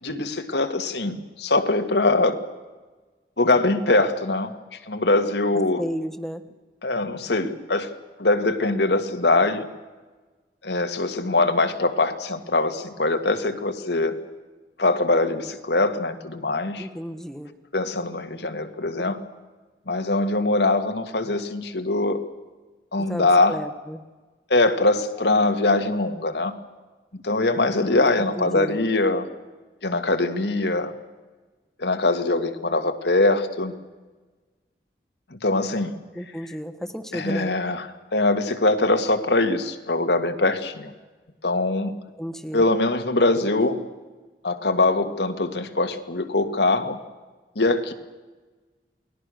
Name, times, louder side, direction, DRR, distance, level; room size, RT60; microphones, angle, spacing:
voice 1, 0.0-2.4 3.4-4.5 4.9-5.8 6.8-7.9 8.2-9.7 10.6-14.2 14.8-16.9 17.7-19.2 19.9-22.2 22.9-23.6 24.5-26.6 27.1-29.3 29.8-30.9 31.8-33.7 35.3-35.9 37.1-40.9 41.4-42.0 42.5-43.8 44.4-47.0 47.6-47.9, left 2 dB, 75° left, 7 dB, 1.9 m, -22 dB
voice 2, 5.8-6.4 16.8-17.5 23.0-24.0 28.3-28.8 36.1-37.5 42.2-42.6, equal, 5° left, 7 dB, 1.3 m, -33 dB
28.5 x 20.0 x 6.5 m, 1.3 s
head